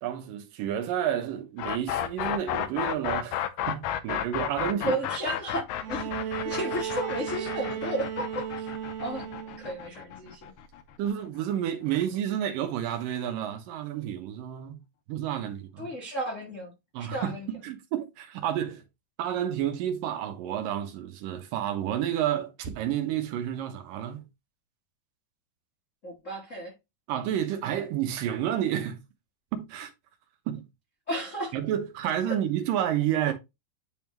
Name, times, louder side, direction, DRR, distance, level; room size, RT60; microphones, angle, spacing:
voice 1, 0.0-5.0 11.0-14.8 15.1-15.9 16.9-18.8 19.2-24.2 27.1-29.0 29.5-29.9 30.5-30.6 31.5-33.3, right 10 dB, 80° right, 2.6 m, -30 dB
sound 1, 1.6-11.4, left 11 dB, 85° left, 2.2 m, -32 dB
voice 2, 4.8-8.7 9.0-10.5 15.8-16.7 17.0-17.5 26.0-26.7 31.1-31.5 32.3-32.4, right 1 dB, 60° left, 0.7 m, -33 dB
Bowed string instrument, 5.8-9.8 11.1-11.2, right 9 dB, 65° right, 2.2 m, -35 dB
10.0 x 3.6 x 3.0 m
omnidirectional pair, 3.9 m